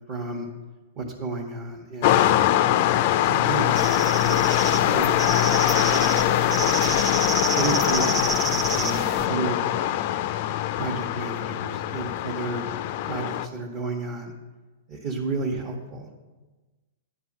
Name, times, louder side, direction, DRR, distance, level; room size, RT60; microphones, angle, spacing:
voice 1, 0.1-0.5 1.0-2.2 2.7-3.0 3.2-3.9 4.2-5.5 5.9-6.3 7.0-7.2 7.5-9.6 10.4-12.6 13.0-14.3 14.9-16.1, right 3 dB, 35° right, -3 dB, 1.1 m, -32 dB
sound 1, 2.0-13.5, left 13 dB, 45° left, 0.4 m, -23 dB
sound 2, 3.7-9.3, right 4 dB, 15° right, 0.6 m, -30 dB
10.0 x 4.7 x 7.3 m, 1.2 s
hypercardioid pair, 150°, 0 cm